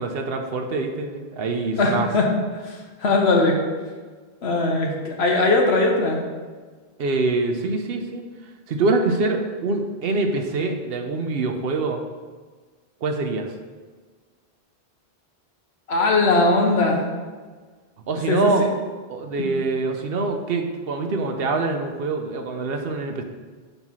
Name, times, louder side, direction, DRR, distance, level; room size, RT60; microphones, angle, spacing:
voice 1, 0.0-2.1 7.0-8.3 8.7-12.0 13.0-13.5 18.1-18.7 19.1-23.2, right 3 dB, 70° right, 5 dB, 0.9 m, -24 dB
voice 2, 1.8-2.3 2.6-3.6 4.4-6.2 15.9-17.1 18.3-18.7 19.4-19.5, left 2 dB, 90° left, 1 dB, 1.3 m, -20 dB
5.6 x 4.0 x 6.0 m, 1.4 s
omnidirectional pair, 1.1 m